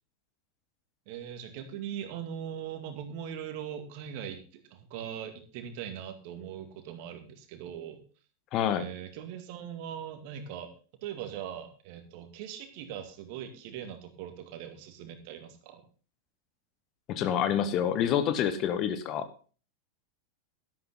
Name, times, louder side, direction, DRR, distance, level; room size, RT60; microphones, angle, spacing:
voice 1, 1.1-8.0 8.7-10.7 11.0-15.8, right 9 dB, 45° right, 7 dB, 2.3 m, -40 dB
voice 2, 8.5-8.9 17.1-19.3, left 9 dB, 35° left, 12 dB, 1.3 m, -27 dB
12.0 x 11.5 x 3.8 m, 0.38 s
figure-of-eight pair, 90°, 0 cm